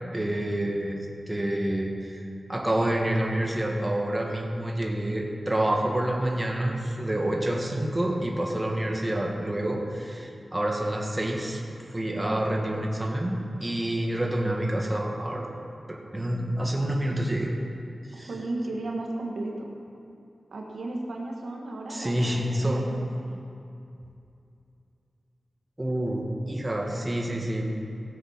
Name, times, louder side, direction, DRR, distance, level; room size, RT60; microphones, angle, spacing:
voice 1, 0.1-2.2 2.5-11.6 11.9-15.5 15.9-17.5 18.0-18.3 21.9-23.0 25.8-27.8, right 1 dB, 20° right, 0 dB, 1.7 m, -28 dB
voice 2, 18.1-19.8 20.5-23.4, right 2 dB, 85° right, -1 dB, 1.6 m, -35 dB
16.5 x 7.2 x 5.8 m, 2.6 s
wide cardioid pair, 75°, 0 cm